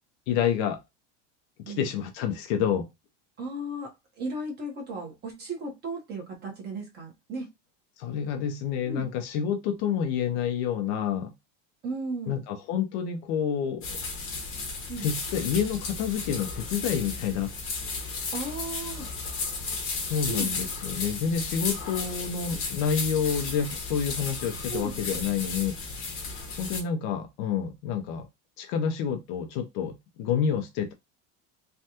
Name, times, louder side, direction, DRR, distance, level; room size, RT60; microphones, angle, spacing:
voice 1, 0.3-0.8 1.7-2.9 8.0-11.3 12.3-13.9 15.0-17.5 19.9-25.8 26.6-28.3 28.6-30.9, left 7 dB, 55° left, 0.7 m, -28 dB
voice 2, 3.4-7.5 8.9-9.0 11.8-12.4 14.9-15.1 18.3-19.1 20.3-20.5 24.7-25.0, right 2 dB, 25° right, 1.1 m, -35 dB
sound 1, 13.8-26.8, left 4 dB, 30° left, 1.0 m, -34 dB
3.3 x 2.3 x 2.8 m
supercardioid pair, 160°, 39 cm